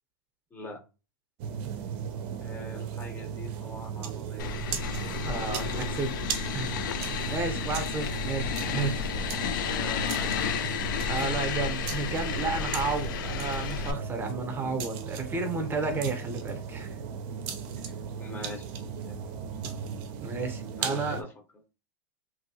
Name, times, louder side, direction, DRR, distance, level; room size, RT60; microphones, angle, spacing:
sound 1, 1.4-21.2, right 7 dB, 50° right, 0.5 m, -36 dB
voice 1, 2.4-4.5 8.3-8.4 9.7-10.7 15.3-15.4 17.8-19.4 20.8-21.3, left 2 dB, 15° left, 0.9 m, -43 dB
sound 2, 4.4-13.9, left 7 dB, 70° left, 0.4 m, -32 dB
voice 2, 5.2-6.1 6.5-6.8 7.3-9.1 11.1-17.0 20.2-21.2, right 4 dB, 20° right, 0.8 m, -32 dB
2.6 x 2.6 x 2.7 m
hypercardioid pair, 110°, 11 cm